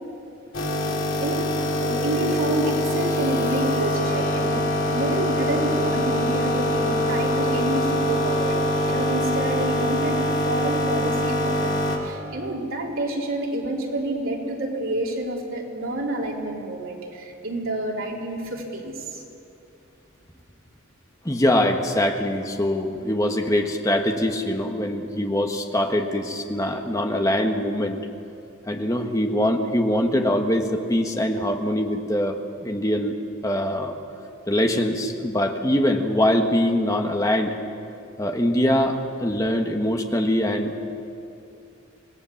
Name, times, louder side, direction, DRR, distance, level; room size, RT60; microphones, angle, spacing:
sound 1, 0.5-12.0, left 1 dB, 75° left, 3.4 m, -24 dB
voice 1, 1.8-4.6 4.9-8.6 8.9-10.2 10.4-18.9, right 1 dB, 85° right, -2 dB, 3.8 m, -28 dB
voice 2, 21.2-28.0 28.7-33.2 33.4-33.9 34.5-37.5 38.2-40.8, left 1 dB, 15° left, 4 dB, 1.4 m, -23 dB
26.0 x 18.0 x 7.2 m, 2.7 s
head